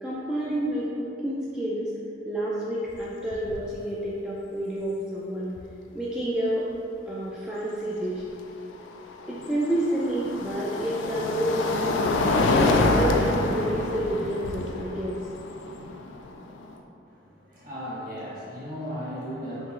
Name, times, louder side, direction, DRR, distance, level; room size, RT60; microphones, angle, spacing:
voice 1, 0.0-1.9 2.3-5.5 5.9-6.7 7.1-8.2 9.3-11.8 12.4-15.2, right 1 dB, 5° right, -8 dB, 0.3 m, -29 dB
sound 1, 2.9-3.0 3.3-3.7 5.6-5.7 8.7-16.8, left 2 dB, 85° left, 0.3 m, -27 dB
voice 2, 17.0-19.7, equal, 45° right, -9 dB, 1.4 m, -36 dB
3.7 x 3.3 x 3.1 m, 2.7 s
head